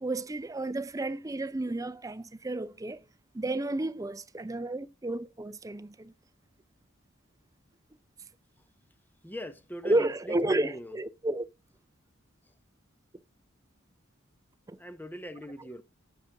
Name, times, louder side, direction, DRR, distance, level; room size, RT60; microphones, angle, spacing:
voice 1, 0.0-3.0 3.3-6.1 9.8-11.4 14.7-14.8, right 2 dB, 15° right, 0.5 m, -31 dB
voice 2, 9.2-11.0 14.8-15.8, equal, 10° left, 0.9 m, -41 dB
8.6 x 6.6 x 3.5 m
head